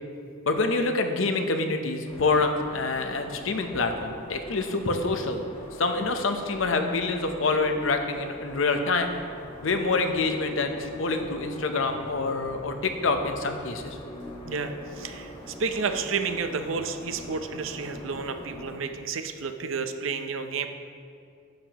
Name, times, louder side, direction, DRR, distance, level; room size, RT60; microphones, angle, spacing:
voice 1, 0.4-5.4 5.8-9.2 9.6-14.0, left 3 dB, 75° left, 6 dB, 0.7 m, -26 dB
sound 1, 2.0-18.8, left 1 dB, 25° left, 1.2 m, -43 dB
voice 2, 14.4-15.3 15.6-20.7, right 5 dB, 75° right, 8 dB, 0.6 m, -31 dB
10.5 x 7.2 x 2.9 m, 2.3 s
head